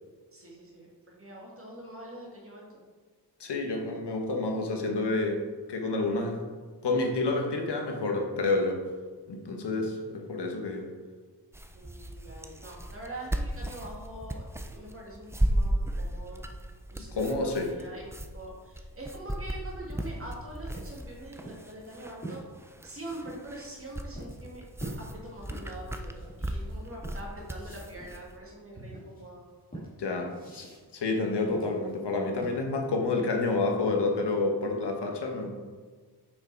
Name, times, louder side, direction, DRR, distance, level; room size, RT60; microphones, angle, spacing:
voice 1, 0.3-2.8 10.2-10.7 11.7-16.4 16.9-18.1 18.3-22.4 22.8-24.6 25.0-29.5, right 1 dB, 35° right, -2 dB, 1.8 m, -44 dB
voice 2, 3.4-5.4 5.7-6.4 6.8-8.8 9.3-10.9 17.1-17.7 30.0-30.7 30.9-35.5, left 3 dB, 85° left, 2 dB, 1.3 m, -29 dB
sound 1, 11.5-28.3, right 1 dB, 5° right, 0.3 m, -35 dB
sound 2, 19.9-23.5 24.2-24.4 24.8-32.9, right 1 dB, 20° left, 2.2 m, -46 dB
6.3 x 6.3 x 4.5 m, 1.4 s
wide cardioid pair, 170°, 40 cm